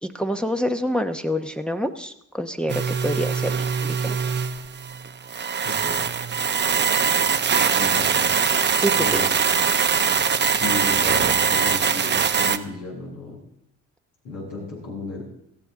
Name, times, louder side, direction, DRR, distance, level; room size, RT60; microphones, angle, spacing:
voice 1, 0.0-4.2 8.8-9.2, equal, 5° left, 4 dB, 0.9 m, -27 dB
sound 1, 2.7-12.6, right 6 dB, 35° right, 0.8 m, -22 dB
voice 2, 5.6-6.1 7.7-8.3 8.6-9.2 10.5-13.4 14.2-15.2, left 2 dB, 80° left, -2 dB, 7.4 m, -34 dB
17.5 x 14.0 x 3.7 m, 0.77 s
cardioid pair, 90°, 30 cm